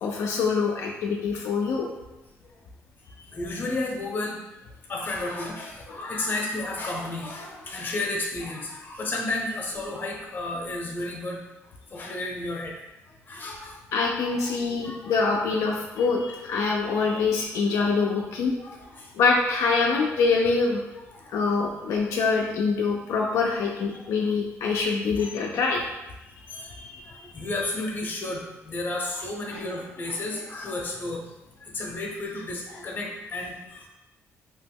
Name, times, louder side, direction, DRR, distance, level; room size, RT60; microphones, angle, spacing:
voice 1, 0.0-1.9 13.9-18.5 19.2-20.8 21.3-25.8 26.5-27.4, left 4 dB, 75° left, -1 dB, 0.4 m, -25 dB
voice 2, 3.3-4.4 4.9-11.4 11.9-12.7 13.3-13.8 14.5-15.1 16.0-16.1 18.6-19.1 21.1-21.3 23.9-24.0 25.2-25.3 26.5-26.8 27.0-33.9, left 2 dB, 35° left, 0 dB, 0.7 m, -32 dB
2.9 x 2.1 x 3.4 m, 0.99 s
cardioid pair, 95°, 5 cm